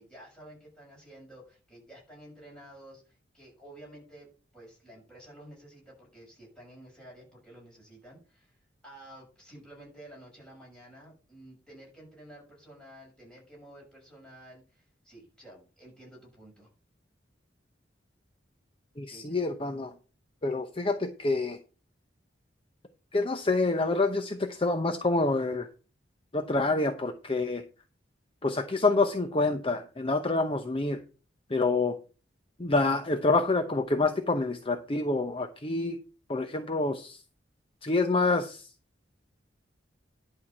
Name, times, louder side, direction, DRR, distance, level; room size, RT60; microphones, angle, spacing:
voice 1, 0.0-8.6 8.8-16.7 19.1-19.3, right 1 dB, 5° left, -3 dB, 6.4 m, -51 dB
voice 2, 19.0-19.9 20.4-21.6 23.1-25.7 26.3-27.6 28.4-31.0 31.5-31.9 32.6-36.0 36.3-37.2 37.8-38.7, left 3 dB, 30° left, 7 dB, 0.8 m, -27 dB
11.0 x 4.7 x 7.2 m, 0.35 s
head